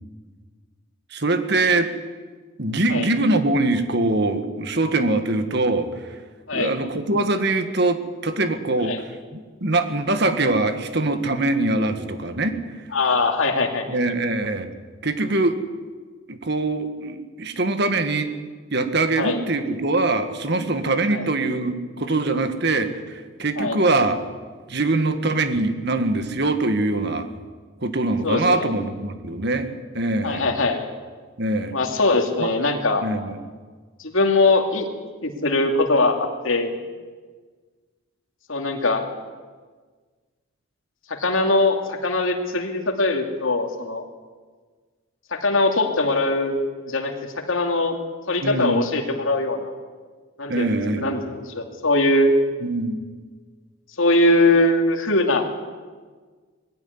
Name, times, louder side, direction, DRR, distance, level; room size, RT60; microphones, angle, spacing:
voice 1, 1.1-1.9 2.6-5.9 6.5-8.9 9.3-12.6 13.9-14.7 15.0-15.6 16.3-18.3 18.7-24.2 24.7-27.3 27.8-30.5 31.4-31.8 32.4-32.5 33.0-33.4 48.4-48.8 50.5-51.1 52.6-53.1, right 2 dB, 50° right, 8 dB, 1.8 m, -23 dB
voice 2, 12.9-13.8 19.2-19.4 21.1-21.3 23.6-23.8 28.2-28.7 30.2-30.9 31.7-33.0 34.0-34.9 35.2-36.8 38.5-39.1 41.1-44.0 45.3-46.6 46.8-47.1 47.5-48.0 48.3-49.7 50.4-52.3 54.0-55.4, left 2 dB, 70° left, 3 dB, 2.6 m, -21 dB
20.0 x 15.5 x 9.6 m, 1.5 s
head